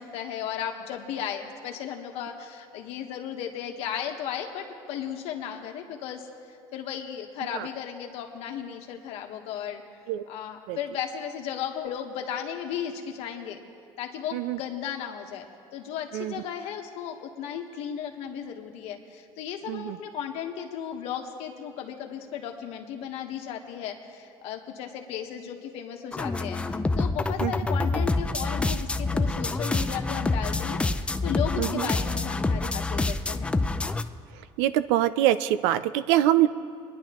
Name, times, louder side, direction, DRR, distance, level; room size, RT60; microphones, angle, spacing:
voice 1, 0.0-9.8 10.3-13.6 14.0-15.5 15.7-33.5, left 9 dB, 70° left, 4 dB, 1.3 m, -35 dB
sound 1, 26.1-34.0, left 3 dB, 10° left, 0.4 m, -27 dB
voice 2, 31.6-31.9 34.6-36.5, right 13 dB, 90° right, 15 dB, 0.4 m, -24 dB
22.5 x 10.5 x 3.0 m, 2.6 s
cardioid pair, 120°, 11 cm